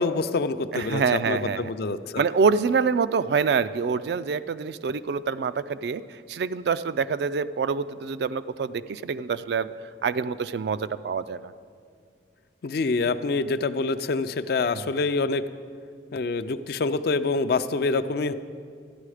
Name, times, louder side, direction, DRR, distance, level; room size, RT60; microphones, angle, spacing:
voice 1, 0.0-2.0 12.6-15.4 16.1-18.3, left 3 dB, 60° left, 12 dB, 0.4 m, -26 dB
voice 2, 0.7-1.7 2.2-9.7 10.0-11.5 14.8-14.9, right 5 dB, 65° right, 14 dB, 0.3 m, -26 dB
13.0 x 9.8 x 4.9 m, 2.2 s
head